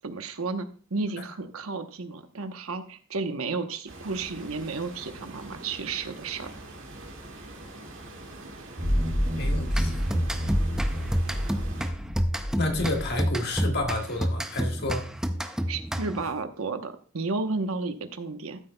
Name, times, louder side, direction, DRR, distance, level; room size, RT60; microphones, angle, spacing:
voice 1, 0.0-6.5 15.7-18.6, right 3 dB, 85° right, 7 dB, 0.9 m, -32 dB
sound 1, 3.9-11.9, right 2 dB, 65° right, 2.1 m, -43 dB
sound 2, 8.8-13.8, equal, 40° right, 2.7 m, -29 dB
voice 2, 9.4-9.9 12.6-15.1, left 2 dB, 50° left, 3 dB, 1.6 m, -30 dB
sound 3, 9.7-16.4, equal, 5° right, 0.5 m, -30 dB
13.5 x 8.1 x 2.2 m, 0.40 s
head